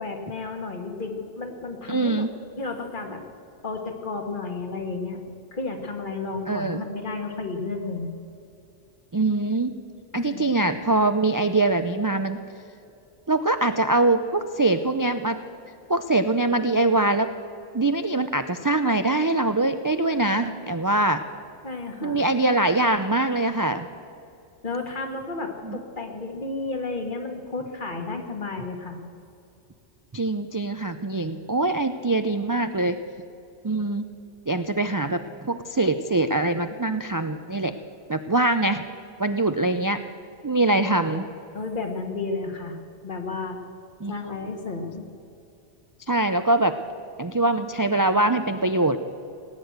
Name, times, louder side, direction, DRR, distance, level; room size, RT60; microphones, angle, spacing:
voice 1, 0.0-2.3 2.6-3.2 3.6-5.2 5.5-8.1 10.1-10.5 21.6-22.2 24.6-29.0 41.5-42.8 43.0-43.6 44.1-45.1, left 3 dB, 45° left, 4 dB, 1.9 m, -32 dB
voice 2, 1.9-2.3 6.5-6.8 9.1-9.8 10.1-12.4 13.3-15.4 15.9-17.3 17.7-21.2 22.0-23.9 25.6-25.8 30.1-33.0 33.6-34.0 34.5-37.7 38.1-38.8 39.2-40.0 40.4-41.2 44.0-44.1 46.1-46.8 47.2-49.0, right 2 dB, 30° right, 9 dB, 0.4 m, -23 dB
18.5 x 9.8 x 8.0 m, 2.6 s
omnidirectional pair, 1.1 m